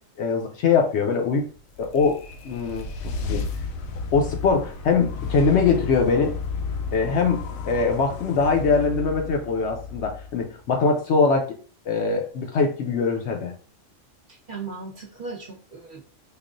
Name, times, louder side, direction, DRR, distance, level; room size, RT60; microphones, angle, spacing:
voice 1, 0.2-1.5 1.8-2.2 2.4-3.4 4.1-6.3 6.9-11.6 11.9-13.5, left 5 dB, 65° left, 2 dB, 0.8 m, -22 dB
sound 1, 1.5-10.8, left 4 dB, 90° left, 1.0 m, -33 dB
voice 2, 14.3-16.0, right 4 dB, 45° right, -4 dB, 1.0 m, -37 dB
4.8 x 2.4 x 2.5 m, 0.41 s
omnidirectional pair, 1.4 m